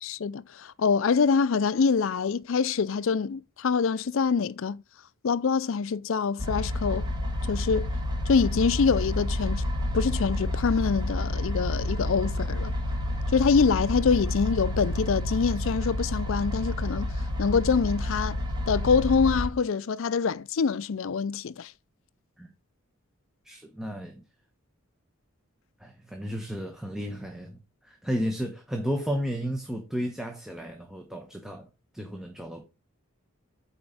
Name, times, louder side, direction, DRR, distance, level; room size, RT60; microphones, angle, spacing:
voice 1, 0.0-4.8 5.2-7.1 7.5-7.9 8.3-9.7 9.9-12.7 13.3-17.1 17.4-21.7, left 5 dB, 65° left, 0.4 m, -25 dB
sound 1, 6.4-19.5, left 1 dB, 20° right, 1.8 m, -29 dB
voice 2, 23.4-24.2 25.8-31.7 31.9-32.6, equal, ahead, 1.0 m, -33 dB
8.6 x 4.4 x 5.5 m
head